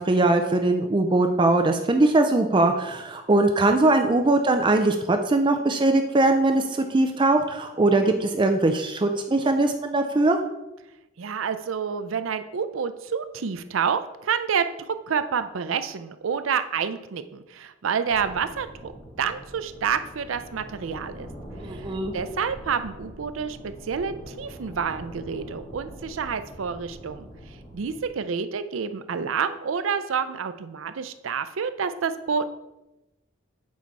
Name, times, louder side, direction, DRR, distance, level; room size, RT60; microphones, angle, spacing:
voice 1, 0.0-6.6 6.9-10.4 21.6-22.1, right 2 dB, 25° right, 6 dB, 0.4 m, -21 dB
voice 2, 11.2-18.9 19.2-21.3 22.1-27.3 27.7-32.5, right 6 dB, 85° right, 11 dB, 0.5 m, -28 dB
sound 1, 18.1-28.1, equal, 40° left, 2.0 m, -43 dB
8.3 x 4.1 x 4.6 m, 0.99 s
head